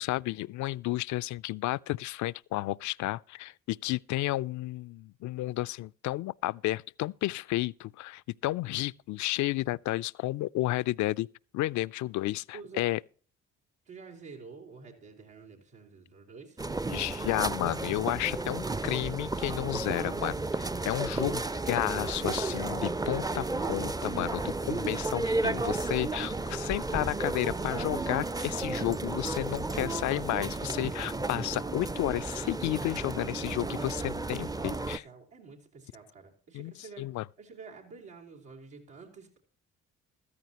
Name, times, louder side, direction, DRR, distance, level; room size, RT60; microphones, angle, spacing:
voice 1, 0.0-11.3 11.5-13.0 16.9-35.0 36.5-36.7 37.0-37.2, left 17 dB, 60° left, 0.5 m, -32 dB
voice 2, 12.5-12.9 13.9-16.6 33.6-37.1 37.4-39.4, right 4 dB, 85° right, 3.9 m, -49 dB
sound 1, 16.6-35.0, right 3 dB, 10° right, 0.5 m, -33 dB
14.5 x 13.5 x 2.9 m
hypercardioid pair, 55°, 33 cm